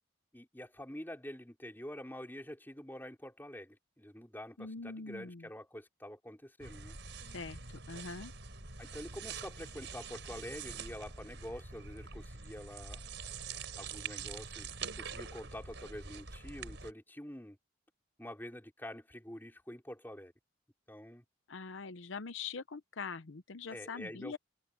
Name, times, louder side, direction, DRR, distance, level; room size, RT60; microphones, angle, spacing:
voice 1, 0.3-7.0 8.8-13.0 13.8-17.6 18.2-20.3 20.9-21.2 23.7-24.3, equal, 10° left, 5.2 m, -47 dB
voice 2, 4.6-5.5 7.3-8.3 21.5-24.4, left 4 dB, 75° left, 0.8 m, -43 dB
sound 1, 6.6-16.9, right 5 dB, 60° right, 5.6 m, -45 dB
head